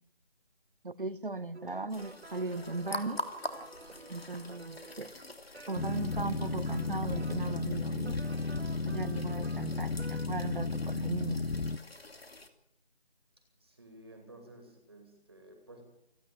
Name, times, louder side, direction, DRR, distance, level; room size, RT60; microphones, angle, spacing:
voice 1, 0.8-3.2 4.1-5.1 5.7-8.2 8.8-11.5, right 2 dB, 50° right, 15 dB, 1.2 m, -37 dB
sound 1, 1.5-10.3, right 3 dB, 80° right, 2.1 m, -51 dB
sound 2, 1.9-12.5, left 1 dB, 65° left, 3.1 m, -45 dB
Boat Water vehicle, 5.7-11.8, left 3 dB, 85° left, 1.0 m, -34 dB
voice 2, 13.6-15.8, right 1 dB, 20° right, 4 dB, 2.6 m, -53 dB
29.0 x 10.5 x 9.2 m, 0.81 s
figure-of-eight pair, 175°, 33 cm